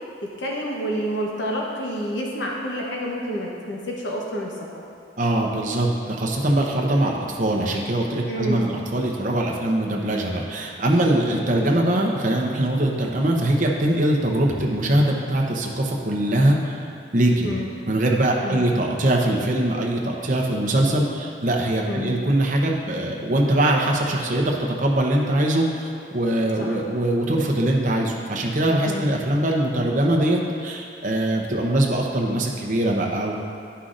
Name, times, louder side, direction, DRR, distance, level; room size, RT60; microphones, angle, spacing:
voice 1, 0.4-4.8 8.3-8.6 11.5-11.7 17.4-17.7 18.4-18.7 21.8-22.1 26.6-26.8 28.8-29.1, equal, 85° left, -2 dB, 1.0 m, -29 dB
voice 2, 5.2-16.8 17.1-17.5 17.9-33.3, right 1 dB, 45° right, -1 dB, 0.8 m, -22 dB
11.0 x 5.6 x 2.6 m, 2.5 s
head